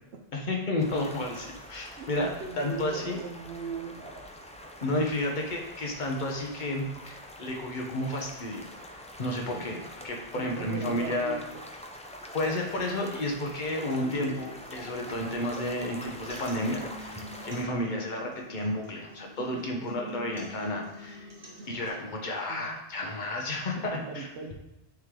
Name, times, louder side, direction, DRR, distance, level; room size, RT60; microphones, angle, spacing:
voice 1, 0.3-3.2 4.8-8.6 9.2-9.8 10.0-11.4 12.3-21.3 21.7-24.3, left 1 dB, 50° left, 1 dB, 1.1 m, -32 dB
sound 1, 0.8-17.7, left 1 dB, 10° left, 0.3 m, -45 dB
voice 2, 2.0-4.3 9.5-9.6 10.3-11.6 21.6-21.8 22.5-22.8 23.8-24.5, right 5 dB, 80° right, 2 dB, 1.0 m, -39 dB
sound 2, 13.9-21.9, equal, 25° right, 1.4 m, -46 dB
9.0 x 3.3 x 3.7 m, 0.95 s
omnidirectional pair, 1.1 m